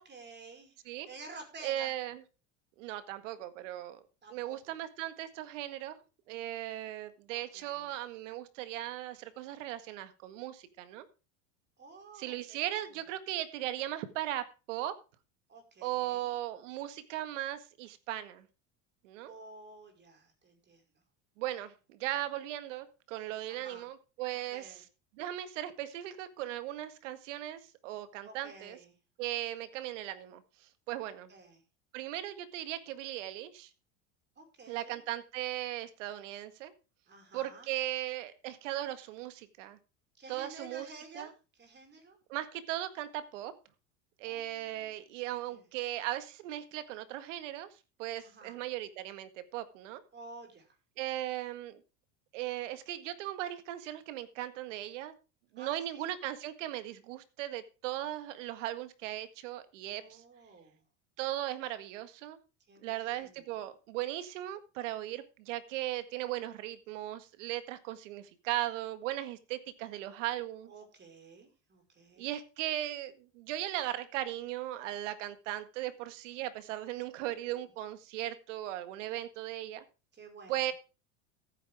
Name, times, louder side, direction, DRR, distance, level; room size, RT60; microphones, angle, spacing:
voice 1, 0.0-0.8 1.0-1.9 4.2-4.7 7.3-7.9 11.8-12.8 15.5-16.3 19.2-20.8 23.5-23.9 24.5-24.8 28.2-28.9 31.3-31.6 34.4-35.0 37.1-37.7 40.2-41.3 41.6-42.2 44.2-44.9 45.5-45.6 48.2-48.6 50.1-50.7 55.6-56.0 59.9-60.8 62.7-63.4 70.7-72.3 77.2-77.6 80.1-80.6, right 3 dB, 30° right, 5 dB, 5.2 m, -52 dB
voice 2, 1.6-2.2 2.8-4.0 4.3-6.0 6.3-11.1 12.2-15.0 15.8-18.5 19.0-19.3 21.4-24.8 25.2-28.8 29.2-30.4 30.9-31.3 31.9-33.7 34.7-36.7 37.3-39.8 40.3-40.9 41.1-41.3 42.3-43.5 44.2-47.7 48.0-50.0 51.0-51.8 52.3-55.1 55.5-60.2 61.2-62.4 62.8-70.7 72.2-79.8 80.5-80.7, right 14 dB, 80° right, 11 dB, 1.8 m, -38 dB
15.0 x 9.5 x 3.6 m, 0.31 s
supercardioid pair, 105°, 37 cm